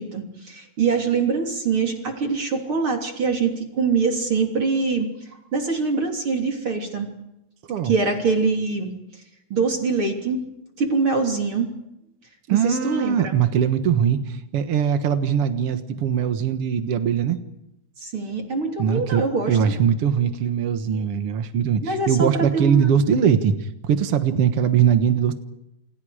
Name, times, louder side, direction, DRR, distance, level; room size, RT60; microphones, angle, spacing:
voice 1, 0.0-5.1 5.5-7.1 7.8-8.9 9.5-10.4 10.8-11.7 12.5-13.4 18.0-19.7 21.8-22.9, right 4 dB, 35° right, 2 dB, 3.5 m, -24 dB
voice 2, 12.5-17.4 18.8-25.3, right 8 dB, 80° right, 8 dB, 1.3 m, -21 dB
29.5 x 28.5 x 5.0 m, 0.88 s
omnidirectional pair, 4.9 m